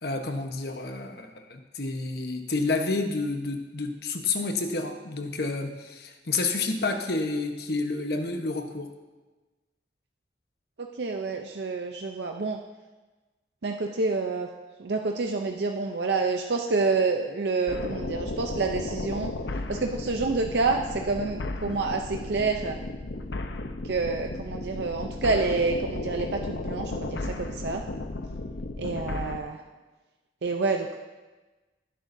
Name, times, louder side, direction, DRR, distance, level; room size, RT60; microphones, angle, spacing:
voice 1, 0.0-8.9, left 3 dB, 60° left, 5 dB, 1.1 m, -29 dB
voice 2, 11.0-12.6 13.6-14.5 14.8-22.8 23.8-27.8 28.8-29.6 30.4-31.0, right 3 dB, 70° right, 3 dB, 0.6 m, -28 dB
sound 1, 17.7-29.4, left 2 dB, 80° left, 0.7 m, -34 dB
19.0 x 10.0 x 2.7 m, 1.2 s
head